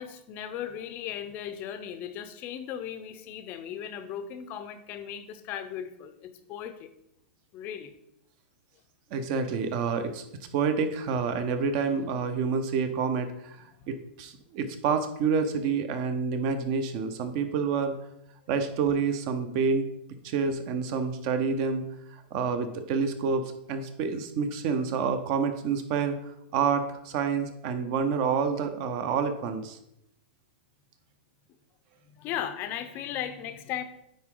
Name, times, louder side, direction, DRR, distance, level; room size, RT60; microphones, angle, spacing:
voice 1, 0.0-6.9 7.5-7.9 32.1-33.8, left 9 dB, 30° left, 9 dB, 0.6 m, -37 dB
voice 2, 9.1-10.2 10.5-17.9 18.5-19.9 20.2-21.8 22.3-29.8, right 5 dB, 40° right, 9 dB, 0.8 m, -28 dB
9.5 x 3.8 x 3.8 m, 0.80 s
supercardioid pair, 155°, 6 cm